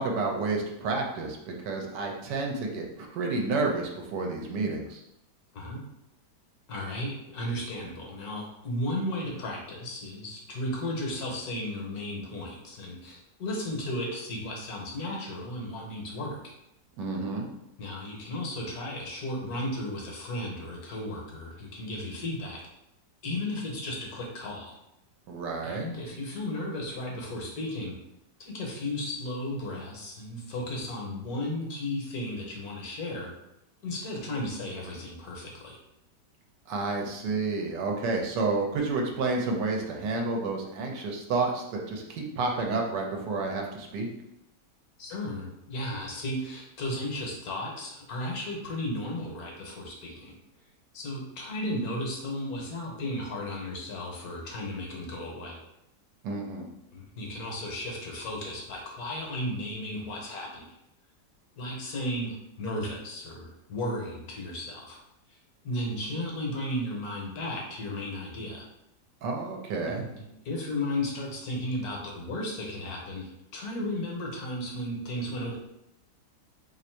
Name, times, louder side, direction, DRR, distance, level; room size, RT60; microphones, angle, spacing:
voice 1, 0.0-5.0 17.0-17.5 25.3-25.8 36.7-44.1 56.2-56.7 69.2-70.1, right 3 dB, 80° right, 1 dB, 1.3 m, -30 dB
voice 2, 6.7-16.5 17.8-22.6 23.2-24.8 25.6-27.9 28.4-33.3 33.8-35.8 45.0-50.3 50.9-55.6 56.9-60.7 61.6-65.0 65.3-65.4 65.6-68.7 69.9-70.2 70.4-75.6, left 1 dB, 65° left, -1 dB, 1.2 m, -34 dB
3.1 x 2.6 x 4.3 m, 0.85 s
omnidirectional pair, 1.8 m